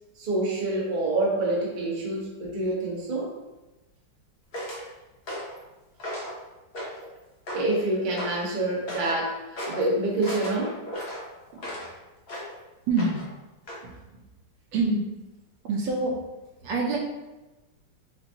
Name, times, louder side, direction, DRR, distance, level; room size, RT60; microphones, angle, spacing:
voice 1, 0.2-3.3 7.5-9.4 9.7-10.8, right 2 dB, 40° right, -4 dB, 0.7 m, -27 dB
sound 1, 4.5-4.8 5.3-5.6 6.0-6.4 6.7-7.1 7.5-7.8 8.2-8.4 8.9-9.3 9.6-9.9 10.2-11.9 12.3-12.5 13.0-13.3 13.7-13.8, equal, 70° left, 0.5 m, -35 dB
voice 2, 11.5-11.8 12.9-13.2 13.8-14.2 14.7-15.0 15.6-16.2 16.6-17.0, right 3 dB, 70° right, -1 dB, 1.3 m, -27 dB
6.7 x 2.6 x 2.7 m, 1.1 s
omnidirectional pair, 2.3 m